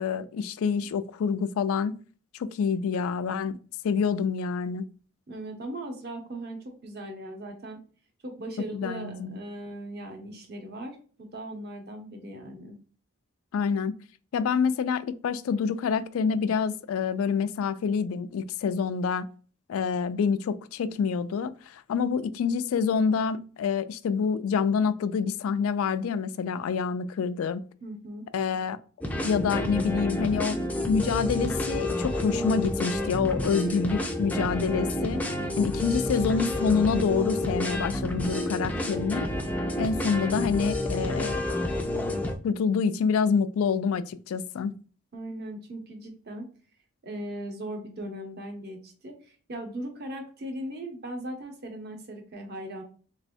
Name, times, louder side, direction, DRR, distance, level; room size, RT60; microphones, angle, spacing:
voice 1, 0.0-2.0 2.3-3.5 3.8-4.9 8.7-9.4 13.5-13.9 14.3-19.3 19.7-27.6 28.3-28.8 29.2-30.6 30.9-35.2 35.6-39.3 39.8-41.4 42.4-44.7, left 6 dB, 80° left, 0.3 m, -27 dB
voice 2, 5.3-7.8 8.2-12.7 27.8-28.2 45.1-46.5 47.0-52.8, right 1 dB, 50° right, 0.9 m, -38 dB
sound 1, 29.0-42.4, left 1 dB, 5° left, 0.4 m, -29 dB
3.5 x 3.1 x 2.5 m
head